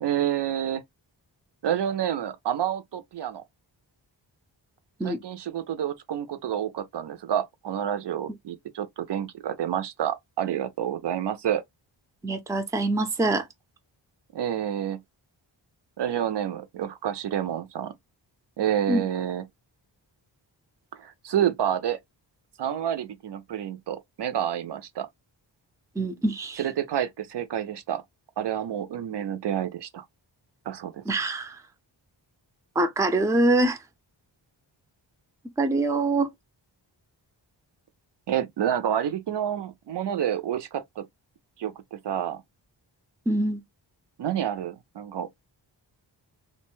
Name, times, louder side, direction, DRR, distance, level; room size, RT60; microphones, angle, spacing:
voice 1, 0.0-0.8 1.6-3.4 5.0-11.6 14.3-15.0 16.0-17.9 18.6-19.5 20.9-22.0 22.6-25.1 26.6-28.0 28.4-30.0 30.7-31.0 38.3-41.1 41.6-42.4 44.2-45.4, right 10 dB, 65° right, 0.5 m, -29 dB
voice 2, 12.2-13.4 18.9-19.0 26.0-26.6 31.1-31.6 32.8-33.8 35.6-36.3 43.3-43.6, right 2 dB, 5° right, 0.4 m, -24 dB
2.5 x 2.1 x 3.0 m
wide cardioid pair, 80°, 47 cm